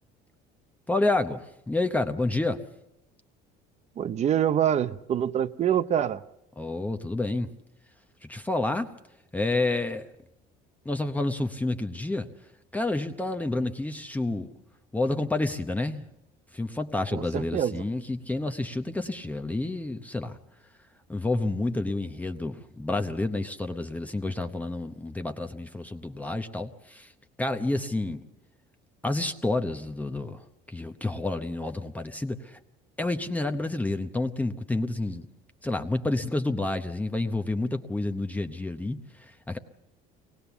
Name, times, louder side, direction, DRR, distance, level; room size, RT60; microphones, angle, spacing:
voice 1, 0.9-2.6 6.6-7.5 8.3-8.9 9.3-10.1 10.8-12.3 12.7-14.5 14.9-16.0 16.5-20.4 21.1-27.1 27.4-28.2 29.0-30.4 30.7-32.6 33.0-35.3 35.6-39.6, left 2 dB, 10° left, 0.8 m, -29 dB
voice 2, 4.0-6.2 17.1-17.8, right 9 dB, 40° right, 0.8 m, -25 dB
23.5 x 19.0 x 7.0 m
cardioid pair, 135°, 18 cm